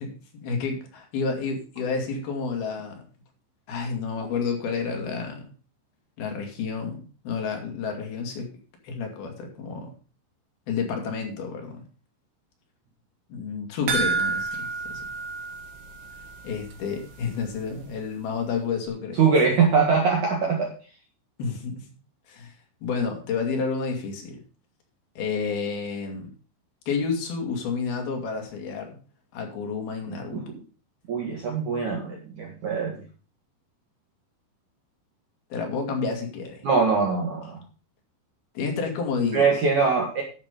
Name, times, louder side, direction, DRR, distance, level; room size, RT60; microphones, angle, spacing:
voice 1, 0.0-3.0 3.7-5.5 6.2-8.5 8.8-9.9 10.7-11.9 13.3-15.1 16.4-19.2 21.4-21.8 22.3-22.5 22.8-24.4 25.2-26.3 26.9-29.0 29.3-30.5 35.5-36.6 38.6-39.4, left 5 dB, 55° left, 3 dB, 3.7 m, -30 dB
sound 1, 13.9-16.4 16.7-16.8 17.2-17.3, right 4 dB, 70° right, 4.1 m, -29 dB
voice 2, 19.2-20.7 30.3-30.4 31.1-33.0 36.6-37.6 39.3-40.2, right 5 dB, 50° right, 0 dB, 2.7 m, -22 dB
12.0 x 7.4 x 5.2 m, 0.36 s
omnidirectional pair, 5.6 m